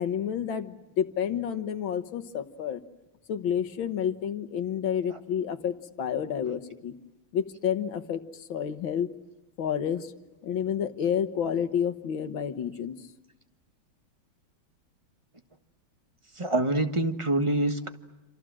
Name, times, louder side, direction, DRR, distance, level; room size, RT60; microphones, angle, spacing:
voice 1, 0.0-2.8 3.3-6.9 7.3-9.1 9.6-10.1 10.4-13.0, left 8 dB, 75° left, 10 dB, 2.0 m, -30 dB
voice 2, 16.4-17.9, right 2 dB, 15° right, 7 dB, 1.3 m, -25 dB
27.5 x 27.5 x 7.6 m, 1.0 s
omnidirectional pair, 2.2 m